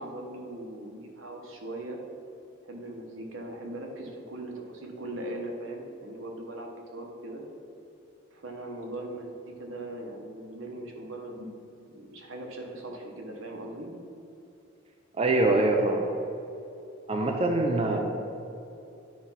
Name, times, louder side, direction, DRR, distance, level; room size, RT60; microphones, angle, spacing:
voice 1, 0.0-2.0 2.6-7.4 8.3-11.5 11.9-13.9 17.7-18.0, right 1 dB, 75° right, 1 dB, 1.2 m, -39 dB
voice 2, 15.2-16.1 17.1-18.0, right 2 dB, 30° right, 2 dB, 0.5 m, -24 dB
9.4 x 3.4 x 5.7 m, 2.8 s
head